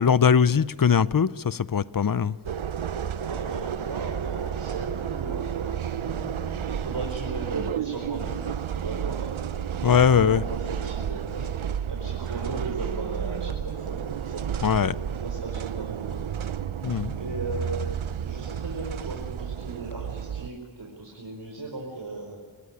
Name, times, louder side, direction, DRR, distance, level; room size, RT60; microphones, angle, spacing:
voice 1, 0.0-2.4 6.1-6.8 9.8-10.4 14.6-14.9 16.8-17.2, left 7 dB, 45° left, 0.7 m, -21 dB
sound 1, 2.5-20.5, right 8 dB, 90° right, 0.8 m, -31 dB
voice 2, 3.2-11.5 11.9-14.7 15.1-16.2 17.1-22.4, right 2 dB, 60° right, 5.0 m, -37 dB
25.5 x 18.5 x 10.0 m
wide cardioid pair, 80°, 47 cm